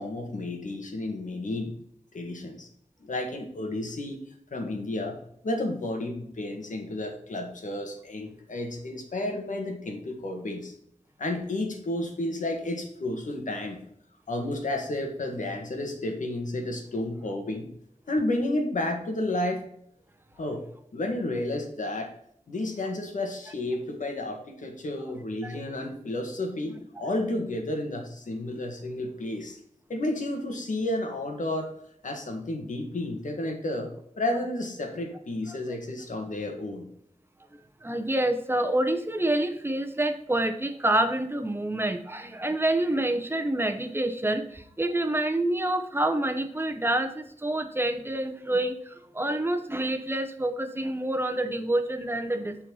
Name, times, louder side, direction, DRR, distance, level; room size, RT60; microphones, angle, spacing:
voice 1, 0.0-1.7 2.1-2.7 3.0-4.2 4.5-5.2 5.4-10.7 11.2-13.8 14.3-17.7 18.1-19.7 20.4-20.6 20.9-22.1 22.5-29.6 29.9-31.7 32.0-36.9, left 1 dB, 75° left, 3 dB, 1.8 m, -31 dB
voice 2, 37.8-52.7, right 1 dB, 15° right, 6 dB, 1.0 m, -27 dB
7.8 x 4.5 x 5.6 m, 0.70 s
wide cardioid pair, 100°, 13 cm